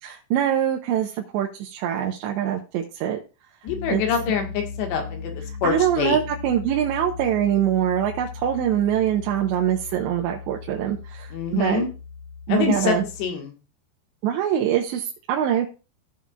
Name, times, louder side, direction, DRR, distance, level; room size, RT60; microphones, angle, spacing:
voice 1, 0.0-3.2 3.9-4.0 5.6-11.8 12.5-13.0 14.2-15.7, right 10 dB, 85° right, 1 dB, 3.1 m, -24 dB
voice 2, 3.6-6.2 11.3-11.9 12.5-13.5, left 6 dB, 80° left, 3 dB, 3.7 m, -25 dB
Piano, 3.7-13.3, left 5 dB, 60° left, 2.6 m, -37 dB
15.5 x 5.6 x 2.4 m, 0.33 s
omnidirectional pair, 5.1 m